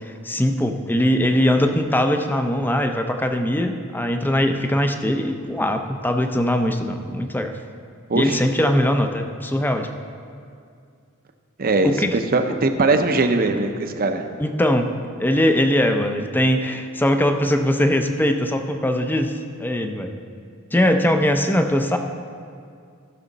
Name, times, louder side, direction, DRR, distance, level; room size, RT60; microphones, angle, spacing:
voice 1, 0.1-7.6 8.1-9.9 11.8-12.1 14.4-14.9 15.2-19.3 19.6-20.1 20.7-22.0, left 1 dB, 10° left, 6 dB, 0.5 m, -21 dB
voice 2, 11.6-14.3, right 3 dB, 45° right, 7 dB, 0.7 m, -20 dB
15.0 x 6.3 x 4.0 m, 2.3 s
head